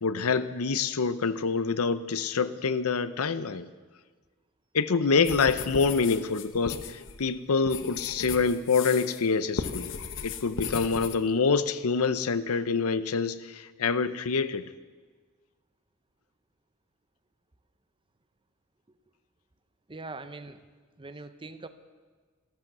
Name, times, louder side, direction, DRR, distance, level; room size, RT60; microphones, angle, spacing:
voice 1, 0.0-3.7 4.7-9.9 10.2-14.7, left 5 dB, 85° left, 14 dB, 0.7 m, -26 dB
sound 1, 5.2-9.3 9.6-11.2, left 5 dB, 60° left, 0.9 m, -36 dB
voice 2, 19.9-20.6 21.0-21.7, right 3 dB, 25° right, 11 dB, 0.8 m, -41 dB
14.0 x 13.0 x 7.3 m, 1.4 s
head